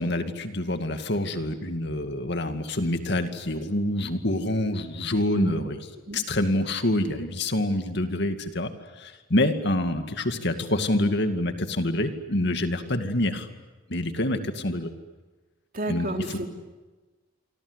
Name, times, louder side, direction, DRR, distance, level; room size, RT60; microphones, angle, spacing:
voice 1, 0.0-5.8 6.1-8.7 9.0-13.5 13.9-14.9 15.9-16.4, left 1 dB, 55° left, 7 dB, 2.3 m, -26 dB
voice 2, 15.7-16.5, right 1 dB, 45° right, 4 dB, 3.2 m, -31 dB
27.5 x 25.5 x 8.2 m, 1.2 s
head